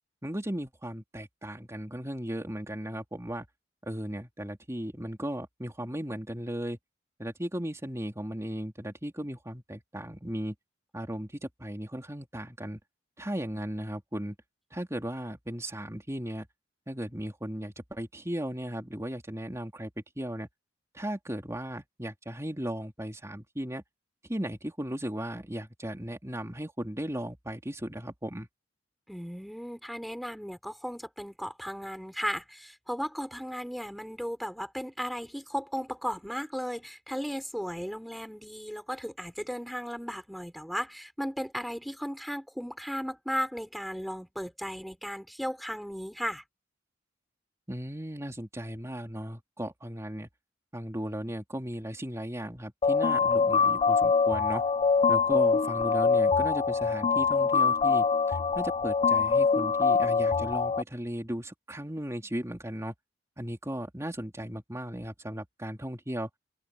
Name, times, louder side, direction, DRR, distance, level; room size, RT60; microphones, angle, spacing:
voice 1, 0.2-3.5 3.8-6.8 7.2-10.5 10.9-12.8 13.2-14.3 14.7-16.5 16.9-19.9 20.2-20.5 20.9-23.8 24.3-28.5 47.7-50.3 50.7-54.6 55.1-62.9 63.4-66.3, equal, 15° right, 3.0 m, -36 dB
voice 2, 29.1-46.4, equal, ahead, 4.3 m, -36 dB
sound 1, 52.8-60.8, left 5 dB, 30° left, 0.3 m, -24 dB
open air
head